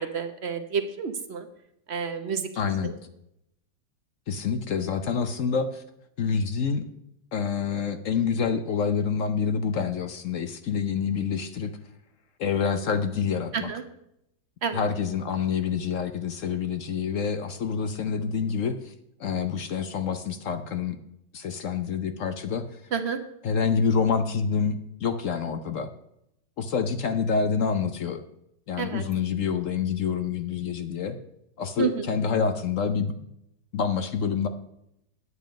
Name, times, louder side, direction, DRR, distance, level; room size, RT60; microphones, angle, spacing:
voice 1, 0.0-1.5 1.9-2.5 2.8-2.9 13.5-13.8 14.6-14.8 22.9-23.2 28.8-29.0 31.8-32.0, right 6 dB, 45° right, 8 dB, 0.9 m, -29 dB
voice 2, 2.6-2.9 4.3-5.8 6.2-6.8 7.3-11.7 12.4-13.7 14.7-18.9 19.2-21.0 21.3-22.8 23.4-25.9 26.6-28.2 28.7-31.2 31.6-33.1 33.7-34.5, left 6 dB, 60° left, 9 dB, 0.9 m, -27 dB
9.9 x 9.1 x 5.1 m, 0.79 s
omnidirectional pair, 1.9 m